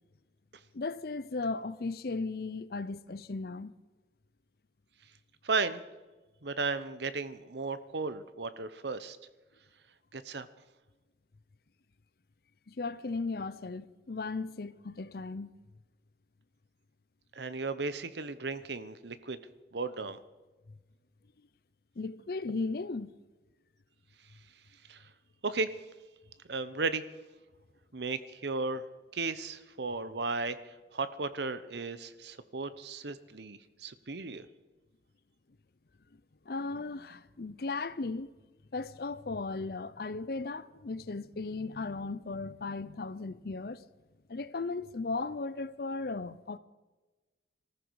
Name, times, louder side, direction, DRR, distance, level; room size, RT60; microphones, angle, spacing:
voice 1, 0.7-3.7 12.7-15.5 22.0-23.1 36.5-38.3 38.7-43.8 44.3-46.6, left 3 dB, 55° left, 0.6 m, -36 dB
voice 2, 5.4-5.8 6.4-9.2 10.1-10.5 17.4-19.4 19.7-20.2 24.9-25.0 25.4-25.7 26.5-27.0 27.9-28.9 29.1-30.6 30.9-34.4, right 3 dB, 75° right, 0.9 m, -35 dB
20.0 x 14.5 x 4.8 m
head